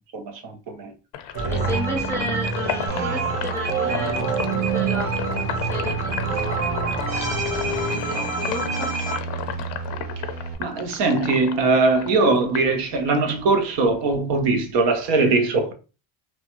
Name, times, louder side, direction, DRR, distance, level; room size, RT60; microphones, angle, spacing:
voice 1, 0.1-0.9 10.6-15.7, right 3 dB, 70° right, 0.8 m, -21 dB
Sink (filling or washing), 1.1-13.4 13.8-15.2, left 10 dB, 75° left, 0.6 m, -34 dB
sound 1, 1.3-9.2, right 4 dB, 55° right, 1.2 m, -26 dB
voice 2, 1.5-8.9, left 2 dB, 5° left, 0.4 m, -33 dB
sound 2, 2.9-10.5, right 6 dB, 30° right, 0.7 m, -34 dB
3.1 x 2.2 x 2.9 m
cardioid pair, 150°, 44 cm